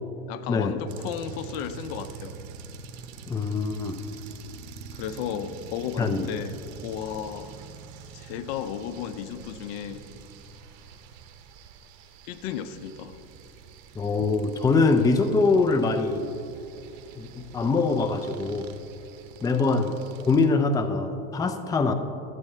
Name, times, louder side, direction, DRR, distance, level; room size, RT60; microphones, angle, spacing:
voice 1, 0.3-2.4 4.9-6.6 6.8-7.5 8.1-10.0 12.3-13.2, left 9 dB, 65° left, 11 dB, 0.7 m, -34 dB
sound 1, 0.9-20.5, right 6 dB, 70° right, 0.9 m, -45 dB
voice 2, 3.3-4.0 6.0-6.3 14.0-16.4 17.1-18.7 19.4-20.0 20.3-21.9, left 3 dB, 10° left, 8 dB, 0.4 m, -23 dB
13.5 x 8.4 x 3.2 m, 2.8 s
supercardioid pair, 110°, 33 cm